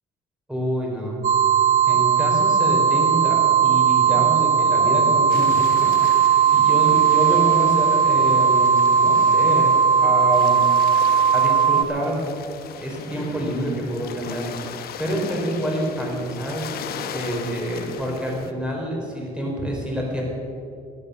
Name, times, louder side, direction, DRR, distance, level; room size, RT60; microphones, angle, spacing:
voice 1, 0.5-1.2 1.9-9.7 10.0-10.6 11.3-12.3 12.8-14.5 15.0-16.7 17.1-20.2, equal, 5° right, -2 dB, 4.4 m, -27 dB
sound 1, 1.2-11.8, right 7 dB, 45° right, 0.6 m, -18 dB
sound 2, 5.3-18.5, left 8 dB, 65° left, 1.0 m, -38 dB
13.5 x 11.0 x 6.9 m, 2.6 s
cardioid pair, 110°, 17 cm